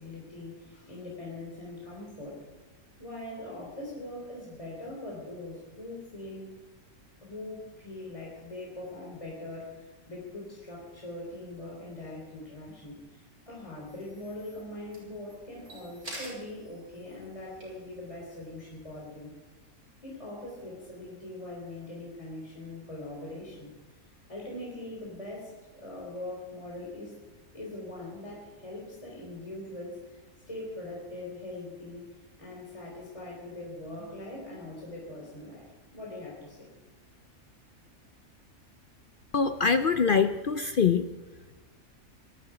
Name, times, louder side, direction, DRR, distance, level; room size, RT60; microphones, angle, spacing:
voice 1, 0.0-2.4 3.0-6.5 7.2-19.3 20.0-23.7 24.3-27.2 27.5-30.2 30.5-32.1 32.4-36.7, left 2 dB, 20° left, -3 dB, 3.7 m, -42 dB
sound 1, 13.9-19.0, right 1 dB, 85° right, 6.3 m, -49 dB
voice 2, 39.3-41.1, left 5 dB, 55° left, 10 dB, 0.6 m, -24 dB
19.5 x 14.0 x 5.0 m, 1.2 s
omnidirectional pair, 1.5 m